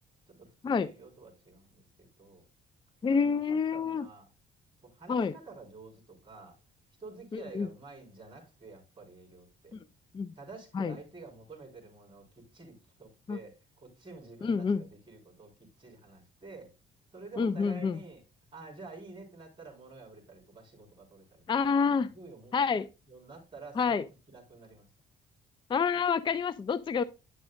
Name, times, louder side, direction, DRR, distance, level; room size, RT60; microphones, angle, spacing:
voice 1, 0.3-2.5 3.1-4.3 4.8-6.6 7.0-9.8 10.4-16.7 17.1-18.2 18.5-21.4 22.0-22.5 23.1-24.0 24.3-24.9, right 3 dB, 25° right, 4.5 m, -50 dB
voice 2, 3.0-4.1 5.1-5.3 7.3-7.7 10.1-10.3 10.7-11.0 13.3-13.4 14.4-14.8 17.4-18.0 21.5-22.1 22.5-22.9 23.8-24.0 25.7-27.0, left 5 dB, 25° left, 0.4 m, -28 dB
10.5 x 6.3 x 2.4 m
cardioid pair, 90°, 20 cm